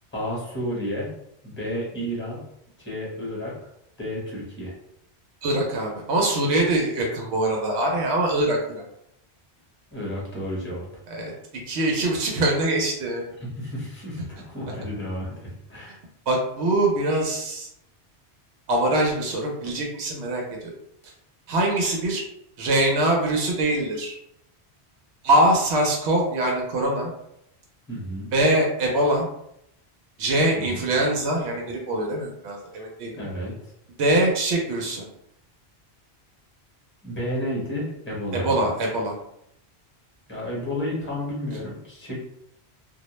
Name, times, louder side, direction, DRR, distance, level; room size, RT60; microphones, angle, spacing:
voice 1, 0.1-1.1 1.4-2.4 2.8-3.5 4.0-4.7 9.9-10.9 13.4-16.0 27.9-28.3 30.6-30.8 33.2-33.5 37.0-38.5 40.3-42.2, equal, 10° left, -6 dB, 0.9 m, -31 dB
voice 2, 5.4-8.8 11.1-13.2 16.3-17.7 18.7-20.7 21.5-22.2 22.6-24.1 25.2-27.1 28.3-29.3 30.2-33.1 34.0-35.0 38.3-39.1, right 1 dB, 85° right, 0 dB, 0.9 m, -23 dB
2.3 x 2.1 x 2.9 m, 0.76 s
omnidirectional pair, 1.1 m